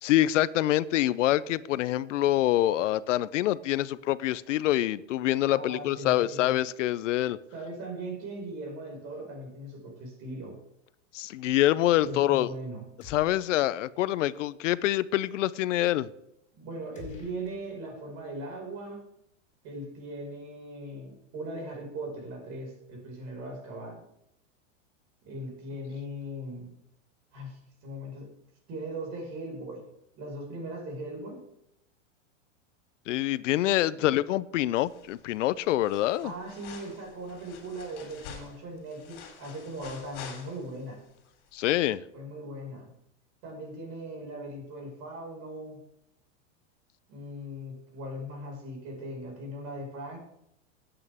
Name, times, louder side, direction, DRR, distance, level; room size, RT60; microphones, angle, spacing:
voice 1, 0.0-7.4 11.1-12.5 13.1-16.1 33.1-36.3 41.5-42.0, left 14 dB, 75° left, 0.6 m, -26 dB
voice 2, 5.5-6.5 7.5-10.6 12.0-12.8 16.5-19.0 19.6-24.0 25.2-26.7 27.3-28.3 28.7-29.8 30.2-31.4 36.2-41.0 42.1-42.9 43.4-45.8 47.1-50.2, right 1 dB, 40° right, 5.2 m, -39 dB
sound 1, 13.0-13.9 14.2-14.3 16.9-18.2, left 3 dB, 20° left, 5.7 m, -49 dB
sound 2, 34.8-35.3 35.6-40.9 41.2-41.3, left 6 dB, 50° left, 3.4 m, -48 dB
17.5 x 8.9 x 3.5 m
supercardioid pair, 140°, 37 cm